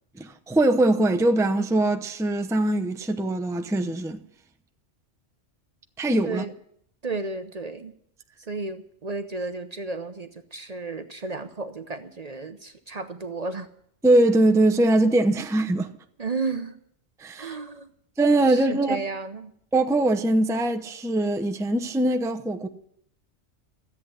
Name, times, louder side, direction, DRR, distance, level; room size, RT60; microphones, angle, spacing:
voice 1, 0.2-4.2 6.0-6.4 14.0-15.9 17.2-17.5 18.2-19.0 19.7-22.7, right 2 dB, 5° right, 0.6 m, -22 dB
voice 2, 7.0-7.9 8.5-13.7 16.2-16.8 17.4-17.9 18.4-19.5, right 3 dB, 40° right, 0.8 m, -33 dB
13.5 x 8.2 x 9.5 m
omnidirectional pair, 1.2 m